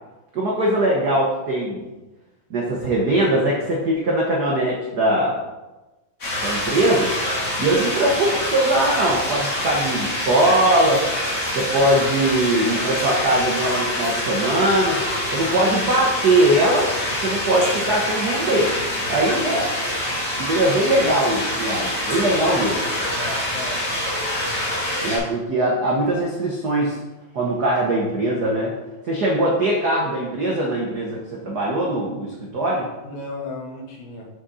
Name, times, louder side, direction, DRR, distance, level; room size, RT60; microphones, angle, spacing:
voice 1, 0.3-1.9 2.5-5.3 6.4-7.1 7.6-11.0 11.5-15.0 15.3-16.9 17.2-18.7 19.1-19.6 20.4-22.8 25.0-27.0 27.3-28.7 29.0-32.9, right 1 dB, 75° right, -3 dB, 0.9 m, -21 dB
sound 1, 6.2-25.2, left 1 dB, 30° left, 2.4 m, -25 dB
voice 2, 23.1-23.8 33.0-34.3, left 2 dB, 80° left, 1 dB, 2.7 m, -34 dB
6.4 x 6.2 x 4.1 m, 1.1 s
omnidirectional pair, 3.4 m